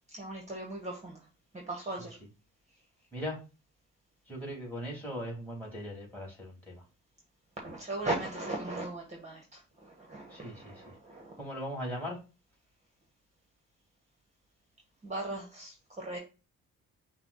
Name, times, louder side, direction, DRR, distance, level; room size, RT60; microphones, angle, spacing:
voice 1, 0.1-1.2 1.5-2.2 7.6-11.3 15.0-16.2, right 2 dB, 25° right, 0 dB, 1.2 m, -38 dB
voice 2, 4.3-6.8 10.3-10.5 11.4-12.2, equal, 5° left, -1 dB, 2.8 m, -38 dB
5.5 x 2.3 x 4.0 m, 0.32 s
cardioid pair, 90°, 30 cm